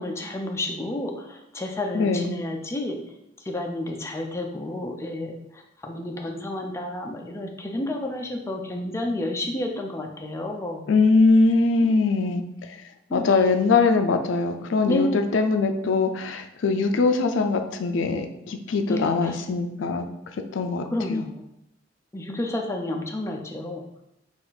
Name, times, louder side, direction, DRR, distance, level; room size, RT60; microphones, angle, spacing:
voice 1, 0.0-3.0 3.5-10.8 11.8-12.0 13.1-13.2 14.9-15.3 18.9-19.4 20.9-21.5 22.1-23.8, left 1 dB, 15° left, 1 dB, 0.4 m, -30 dB
voice 2, 1.9-2.3 10.9-12.4 13.1-20.1 20.5-20.8 21.1-21.2, left 3 dB, 90° left, 6 dB, 0.4 m, -22 dB
4.2 x 2.5 x 3.9 m, 0.83 s
head